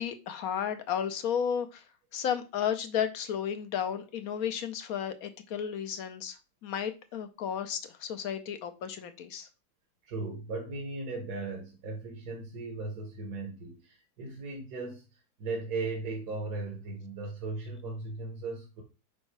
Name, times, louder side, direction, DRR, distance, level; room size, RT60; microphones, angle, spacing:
voice 1, 0.0-1.8 2.1-9.5, left 8 dB, 65° left, 9 dB, 1.2 m, -33 dB
voice 2, 10.0-18.8, right 3 dB, 75° right, 0 dB, 1.8 m, -37 dB
6.2 x 5.2 x 3.3 m, 0.30 s
omnidirectional pair, 1.7 m